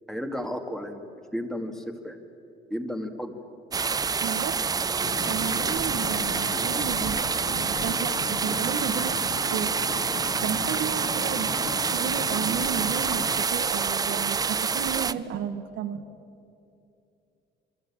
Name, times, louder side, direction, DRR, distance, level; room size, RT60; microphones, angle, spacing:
voice 1, 0.1-2.2 2.7-3.4, equal, ahead, 5 dB, 2.1 m, -33 dB
sound 1, 3.7-15.1, right 5 dB, 20° right, 0.5 m, -27 dB
voice 2, 4.2-4.6 5.2-9.7 10.4-16.0, right 9 dB, 75° right, 7 dB, 1.8 m, -33 dB
sound 2, 5.0-13.5, left 9 dB, 40° left, 0.6 m, -38 dB
27.0 x 23.5 x 8.8 m, 2.6 s
cardioid pair, 140°, 20 cm